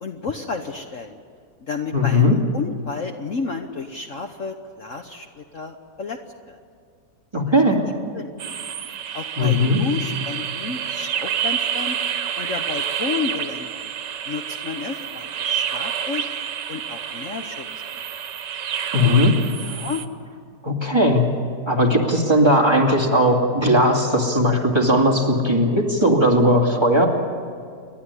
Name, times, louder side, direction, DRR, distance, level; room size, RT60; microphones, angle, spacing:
voice 1, 0.0-1.2 1.6-6.2 6.5-6.6 8.1-8.3 9.1-12.0 12.4-13.9 14.3-16.3 16.7-17.6 19.6-20.0, left 4 dB, 50° left, 5 dB, 1.3 m, -31 dB
voice 2, 1.9-2.4 7.3-7.8 9.4-9.8 18.9-19.3 20.6-21.2 21.7-27.1, equal, 15° right, -1 dB, 2.5 m, -17 dB
sound 1, 8.4-20.1, right 8 dB, 80° right, 1.7 m, -28 dB
29.5 x 12.0 x 9.8 m, 2.2 s
omnidirectional pair, 1.8 m